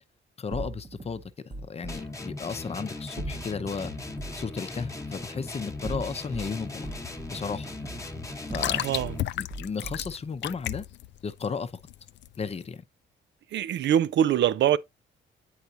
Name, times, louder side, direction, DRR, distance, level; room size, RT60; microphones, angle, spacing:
voice 1, 0.4-1.3 1.7-3.9 4.4-6.9 7.3-7.7 8.5-8.8 9.3-10.8 11.2-11.7 12.4-12.8, left 5 dB, 30° left, 0.7 m, -34 dB
sound 1, 0.5-2.0 3.2-4.5 5.7-6.5 6.8-9.2 9.5-10.2, right 2 dB, 20° right, 0.8 m, -39 dB
sound 2, 1.9-9.4, left 2 dB, 15° left, 1.1 m, -38 dB
sound 3, 6.0-12.7, left 13 dB, 65° left, 0.4 m, -35 dB
voice 2, 8.7-9.2 13.5-14.8, right 10 dB, 65° right, 0.5 m, -23 dB
8.1 x 4.8 x 2.7 m
cardioid pair, 90°, 20 cm